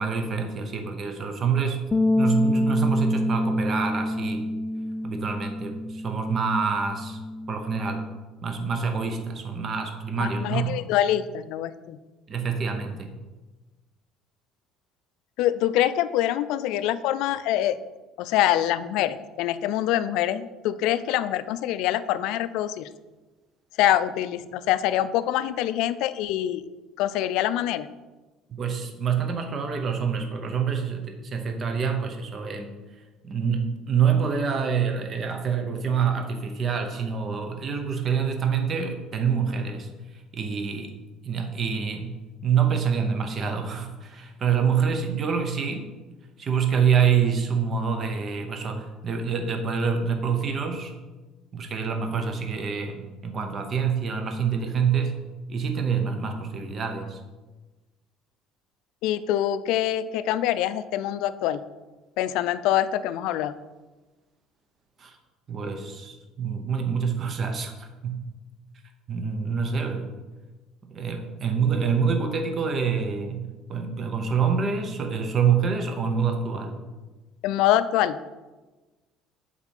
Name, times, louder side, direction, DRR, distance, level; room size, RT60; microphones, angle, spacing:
voice 1, 0.0-1.9 2.2-4.4 5.0-7.2 7.5-8.0 8.4-10.8 12.3-13.1 28.5-32.7 33.2-40.9 41.2-42.2 42.4-45.9 46.4-50.9 51.5-55.2 55.5-57.2 65.0-65.2 65.5-68.3 69.1-70.1 70.8-76.8, right 6 dB, 35° right, 5 dB, 0.8 m, -26 dB
sound 1, 1.9-8.2, left 1 dB, 15° left, 0.5 m, -27 dB
voice 2, 10.2-12.0 15.4-17.8 18.2-22.9 23.8-26.6 27.0-27.9 59.0-61.6 62.2-63.5 77.4-78.2, left 12 dB, 75° left, 14 dB, 0.4 m, -25 dB
7.3 x 4.2 x 5.3 m, 1.2 s
cardioid pair, 135°, 0 cm